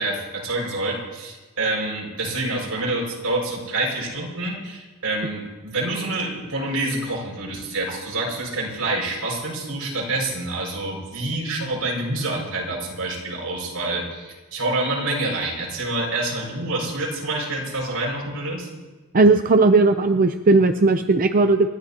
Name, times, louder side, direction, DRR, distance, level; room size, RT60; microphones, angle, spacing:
voice 1, 0.0-18.7, right 2 dB, 80° right, -2 dB, 6.1 m, -27 dB
voice 2, 19.1-21.7, right 3 dB, 40° right, 7 dB, 0.6 m, -16 dB
29.0 x 14.0 x 2.9 m, 1.3 s
head